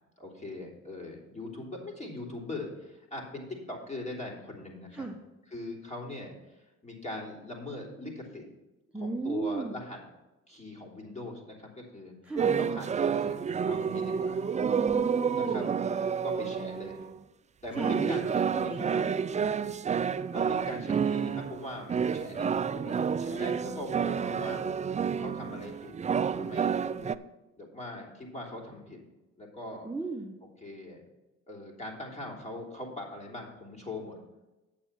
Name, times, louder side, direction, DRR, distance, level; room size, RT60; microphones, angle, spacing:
voice 1, 0.2-5.1 5.5-8.5 8.9-10.0 10.5-14.4 15.2-15.7 16.2-17.1 17.6-18.7 20.3-24.6 25.2-25.9 26.3-27.2 27.6-29.0 29.4-29.9 30.6-31.0 31.5-34.2, left 1 dB, 20° left, -1 dB, 3.2 m, -41 dB
voice 2, 8.9-9.7 12.3-12.6 14.6-15.6 17.8-18.2 18.5-19.1 23.7-23.9 24.2-24.3 29.8-30.4, right 2 dB, 5° right, -1 dB, 1.1 m, -35 dB
sound 1, 12.4-17.2 17.7-27.1, right 7 dB, 25° right, 0.4 m, -29 dB
8.9 x 7.2 x 5.8 m, 1.1 s
cardioid pair, 90°, 30 cm